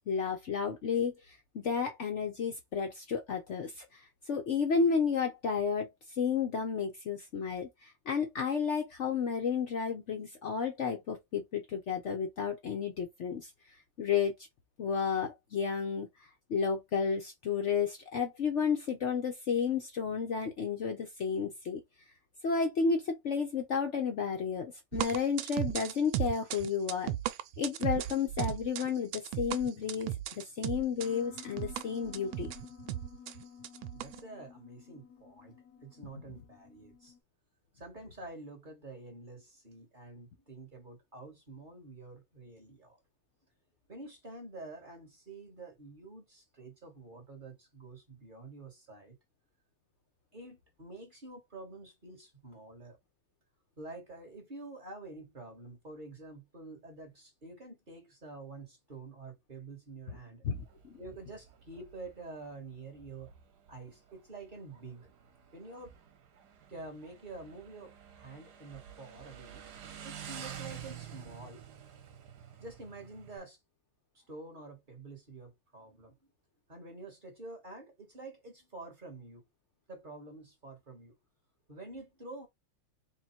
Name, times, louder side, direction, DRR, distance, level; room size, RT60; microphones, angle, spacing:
voice 1, 0.1-5.9 6.2-13.5 14.0-14.3 14.8-16.1 16.5-21.8 22.4-27.1 27.6-32.5 60.4-61.0, left 6 dB, 85° left, 0.6 m, -32 dB
sound 1, 24.9-34.2, right 13 dB, 80° right, 1.3 m, -36 dB
Piano, 31.0-37.2, left 8 dB, 65° left, 0.9 m, -52 dB
voice 2, 33.9-37.1 37.7-43.0 43.9-49.2 50.3-53.0 53.8-60.4 61.0-63.3 63.7-65.1 65.5-65.9 66.7-69.6 70.0-71.6 72.6-73.6 74.1-76.1 76.7-79.5 79.9-81.1 81.7-82.5, right 3 dB, 30° right, 1.0 m, -48 dB
Motorcycle, 60.5-73.4, right 9 dB, 60° right, 1.2 m, -50 dB
3.7 x 2.3 x 4.2 m
omnidirectional pair, 2.3 m